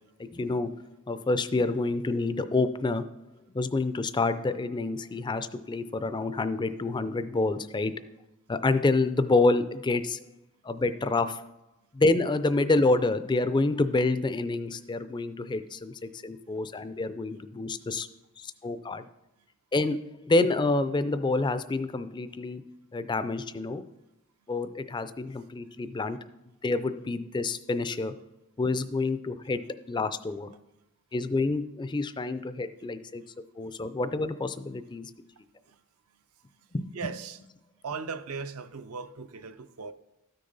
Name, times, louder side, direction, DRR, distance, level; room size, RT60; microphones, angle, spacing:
voice 1, 0.2-0.8 1.1-3.0 3.5-7.9 8.5-10.2 10.6-11.5 11.9-18.1 18.4-19.0 19.7-22.6 22.9-23.8 24.5-26.2 26.6-28.1 28.6-29.6 29.9-30.5 31.1-33.2 33.6-35.1 36.7-36.9, left 3 dB, 20° left, 0.4 m, -28 dB
voice 2, 36.9-37.4 37.8-39.9, right 5 dB, 70° right, 0.6 m, -37 dB
13.0 x 6.5 x 4.0 m
head